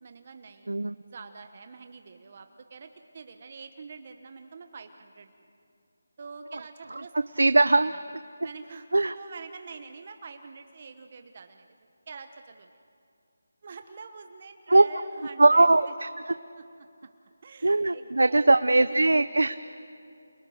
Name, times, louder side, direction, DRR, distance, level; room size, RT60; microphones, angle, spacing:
voice 1, 0.0-0.7 1.0-5.3 6.2-7.1 7.9-8.0 8.4-8.9 9.1-11.7 12.1-12.8 13.6-15.9 16.6-16.9 17.4-19.0, right 5 dB, 35° right, 7 dB, 1.1 m, -45 dB
voice 2, 7.4-7.9 8.9-9.1 14.7-14.8 15.4-16.3 17.6-19.5, right 2 dB, 85° right, 12 dB, 0.7 m, -20 dB
30.0 x 28.5 x 6.5 m, 2.5 s
figure-of-eight pair, 170°, 0 cm